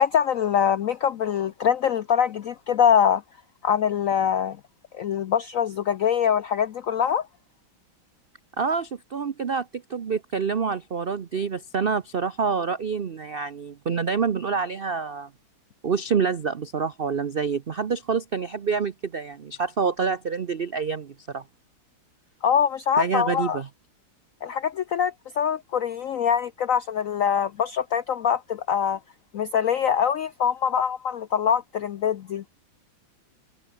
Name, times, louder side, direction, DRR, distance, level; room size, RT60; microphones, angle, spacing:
voice 1, 0.0-3.2 3.6-4.6 4.9-7.3 22.4-23.6 24.4-29.0 29.3-32.4, left 8 dB, 75° left, 0.7 m, -23 dB
voice 2, 8.6-15.3 15.8-21.4 23.0-23.7, right 5 dB, 80° right, 0.5 m, -27 dB
omnidirectional pair, 2.2 m